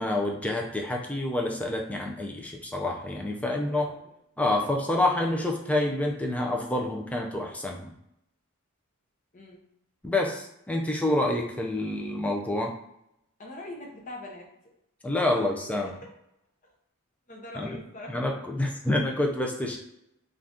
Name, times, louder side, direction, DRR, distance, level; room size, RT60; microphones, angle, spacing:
voice 1, 0.0-3.9 4.4-7.9 10.0-12.7 15.0-15.9 17.5-17.8 18.1-19.8, left 1 dB, 5° left, 1 dB, 0.3 m, -28 dB
voice 2, 3.5-4.1 4.8-5.2 9.3-9.6 13.4-14.5 17.3-18.2, left 2 dB, 35° left, -1 dB, 0.7 m, -42 dB
2.6 x 2.4 x 3.5 m, 0.81 s
head